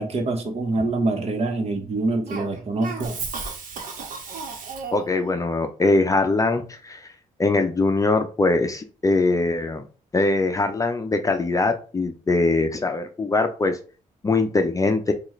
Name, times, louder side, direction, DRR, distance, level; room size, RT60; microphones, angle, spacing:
voice 1, 0.0-3.2, right 2 dB, 45° right, 4 dB, 1.2 m, -25 dB
Cough, 2.3-5.2, right 4 dB, 70° right, 1.1 m, -34 dB
voice 2, 4.9-7.1 7.4-9.8 10.1-13.8 14.2-15.1, left 3 dB, 25° left, 6 dB, 0.5 m, -22 dB
6.1 x 2.4 x 3.1 m, 0.37 s
cardioid pair, 90°, 14 cm